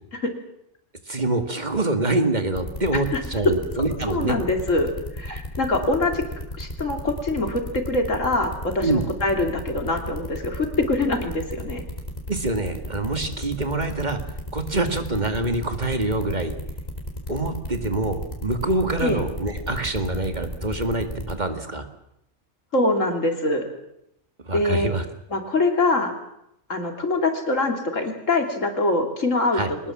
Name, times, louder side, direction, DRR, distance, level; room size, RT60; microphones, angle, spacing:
voice 1, 1.1-4.4 5.3-5.4 8.8-9.0 12.3-14.2 14.5-16.5 17.3-21.9 24.5-25.0 29.5-29.7, right 2 dB, 35° right, 7 dB, 2.3 m, -25 dB
sound 1, 2.5-21.3, left 1 dB, 30° left, 3.8 m, -33 dB
voice 2, 4.1-4.9 5.2-6.3 6.6-11.8 19.0-19.2 22.7-23.7 24.5-24.9 25.3-26.1 26.7-29.8, left 2 dB, 85° left, 4 dB, 3.6 m, -23 dB
23.5 x 20.0 x 7.4 m, 0.79 s
omnidirectional pair, 1.3 m